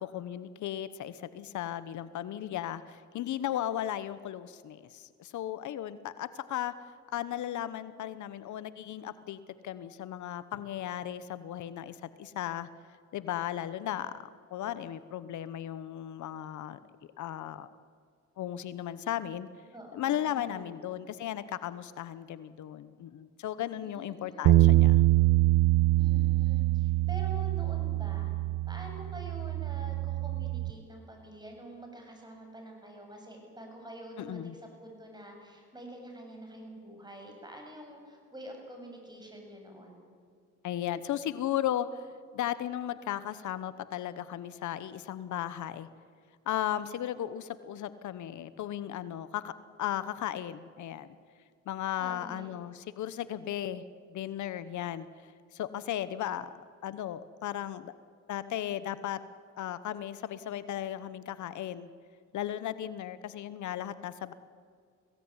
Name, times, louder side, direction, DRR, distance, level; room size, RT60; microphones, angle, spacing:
voice 1, 0.0-6.7 7.1-12.7 13.1-14.1 14.5-16.8 17.2-17.7 18.4-19.5 19.9-25.0 34.2-34.6 40.6-42.1 42.3-45.9 46.5-49.5 49.8-51.1 51.7-53.8 54.1-57.9 58.3-59.2 59.6-61.9 62.3-64.3, left 11 dB, 75° left, 14 dB, 1.0 m, -36 dB
voice 2, 19.7-20.7 23.8-24.6 26.0-28.3 28.7-40.0 52.0-52.5, right 1 dB, 15° right, 1 dB, 8.0 m, -47 dB
sound 1, 24.5-30.7, right 16 dB, 75° right, 0.8 m, -25 dB
22.5 x 17.0 x 9.8 m, 2.1 s
cardioid pair, 90°, 30 cm